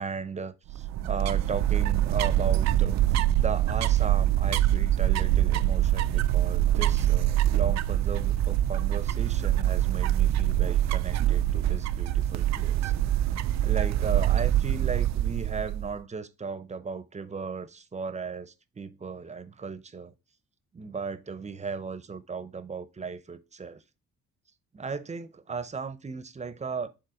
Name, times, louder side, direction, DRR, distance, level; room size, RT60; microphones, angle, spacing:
voice 1, 0.0-12.9 13.6-20.1 20.7-23.8 24.7-26.9, right 5 dB, 25° right, 0.7 m, -36 dB
sound 1, 0.7-15.9, right 12 dB, 65° right, 0.4 m, -24 dB
6.8 x 3.8 x 3.7 m
cardioid pair, 90°, 30 cm